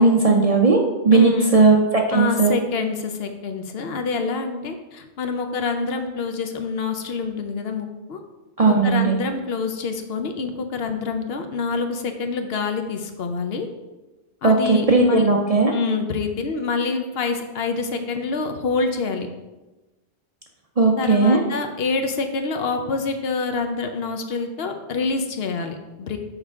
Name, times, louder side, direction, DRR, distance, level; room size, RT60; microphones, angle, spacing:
voice 1, 0.0-2.5 8.6-9.2 14.4-15.7 20.8-21.4, right 3 dB, 45° right, 1 dB, 0.5 m, -17 dB
voice 2, 1.1-1.5 2.1-8.2 8.7-13.7 14.4-15.3 15.7-19.3 21.0-26.2, left 4 dB, 65° left, 6 dB, 0.8 m, -26 dB
6.5 x 5.0 x 3.6 m, 1.1 s
omnidirectional pair, 1.2 m